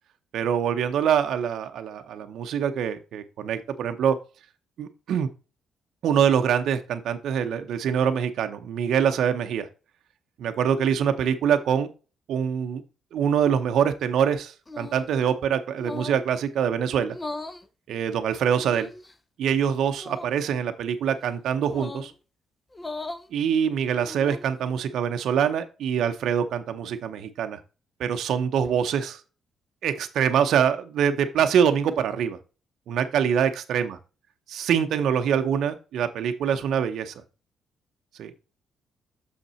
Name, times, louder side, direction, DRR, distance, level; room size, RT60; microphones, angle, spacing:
voice 1, 0.3-4.1 4.8-5.3 6.0-9.7 10.4-11.9 12.3-12.8 13.1-17.2 17.9-18.9 19.4-22.1 23.3-27.6 28.0-29.2 29.8-32.4 32.9-34.0 34.5-37.1 38.2-38.3, right 8 dB, 75° right, 7 dB, 0.7 m, -24 dB
sound 1, 14.7-15.2 15.8-16.3 17.1-17.6 18.6-19.1 20.0-20.3 21.7-22.1 22.7-23.3 23.9-24.5, left 2 dB, 20° left, 0.8 m, -37 dB
6.6 x 5.5 x 4.2 m, 0.33 s
cardioid pair, 90°, 0 cm